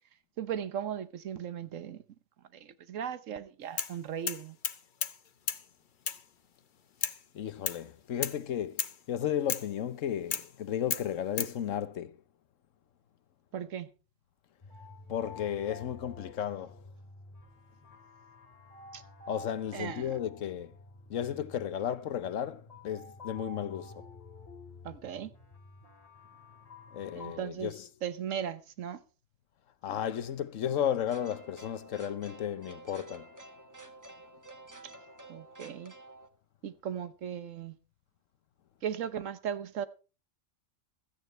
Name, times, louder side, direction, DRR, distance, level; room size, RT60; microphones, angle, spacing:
voice 1, 0.4-2.0 2.5-4.6 13.5-13.9 18.9-19.0 19.7-20.1 24.8-25.3 27.2-27.7 28.0-29.0 35.3-35.9 36.6-37.7 38.8-39.9, right 8 dB, 80° right, 1.3 m, -37 dB
sound 1, 3.8-4.0 4.3-5.2 5.5-5.6 6.1-6.2 7.0-7.2 7.7-7.8 8.2-8.4 8.8-9.0 9.5-9.7 10.3-10.5 10.9-11.5, left 7 dB, 45° left, 0.8 m, -33 dB
voice 2, 7.3-12.2 15.1-16.8 19.3-20.8 21.1-24.1 26.9-27.9 29.8-33.3, left 9 dB, 80° left, 1.2 m, -34 dB
sound 2, 14.6-27.4, left 3 dB, 30° left, 2.6 m, -50 dB
sound 3, 31.1-36.3, right 2 dB, 15° right, 1.2 m, -51 dB
16.0 x 13.0 x 3.2 m
omnidirectional pair, 1.3 m